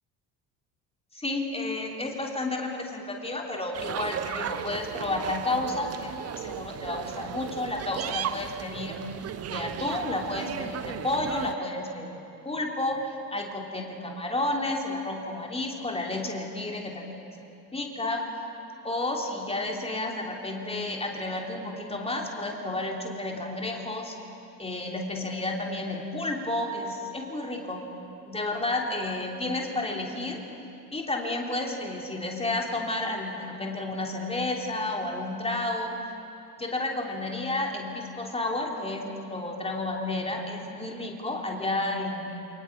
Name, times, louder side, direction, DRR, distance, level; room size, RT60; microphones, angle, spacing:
voice 1, 1.1-9.0 9.4-17.3 17.7-18.2 18.8-24.2 24.6-27.8 28.2-30.4 30.9-36.0 36.6-42.5, left 2 dB, 10° left, 0 dB, 3.2 m, -31 dB
sound 1, 3.7-11.5, right 10 dB, 30° right, 0.8 m, -36 dB
28.0 x 24.0 x 5.0 m, 2.7 s
figure-of-eight pair, 60°, 48 cm